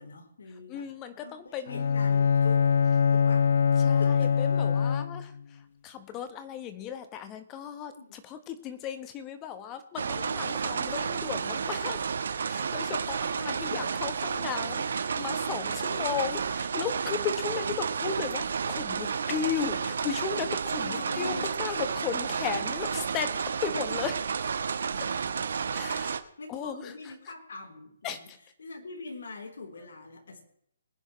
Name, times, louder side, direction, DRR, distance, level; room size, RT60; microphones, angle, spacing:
voice 1, 0.0-0.9 1.2-1.3 1.7-2.7 3.1-3.5 4.0-4.3 8.0-8.1 10.2-10.4 13.2-13.8 20.8-21.5 26.4-28.3 28.6-30.4, left 3 dB, 75° left, 3 dB, 3.4 m, -43 dB
voice 2, 0.7-2.0 3.8-12.0 12.5-24.4 25.7-26.2 26.5-27.3 28.0-28.4, left 8 dB, 15° left, 10 dB, 1.0 m, -36 dB
Bowed string instrument, 1.7-5.4, left 6 dB, 60° left, 0.5 m, -23 dB
sound 1, 10.0-26.2, right 6 dB, 65° right, 1.1 m, -31 dB
22.5 x 9.8 x 3.1 m, 0.72 s
hypercardioid pair, 170°, 0 cm